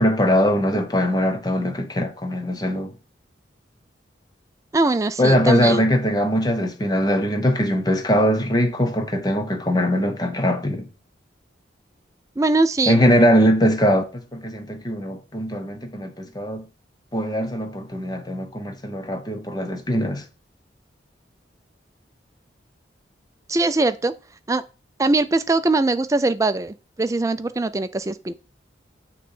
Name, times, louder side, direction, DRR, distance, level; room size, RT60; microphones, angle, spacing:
voice 1, 0.0-2.9 5.2-10.9 12.9-16.6 17.1-20.2, equal, 20° left, 0.9 m, -21 dB
voice 2, 4.7-5.8 12.4-13.0 23.5-24.1 24.5-24.6 25.0-28.3, right 2 dB, 15° right, 0.4 m, -21 dB
6.7 x 3.2 x 5.4 m
head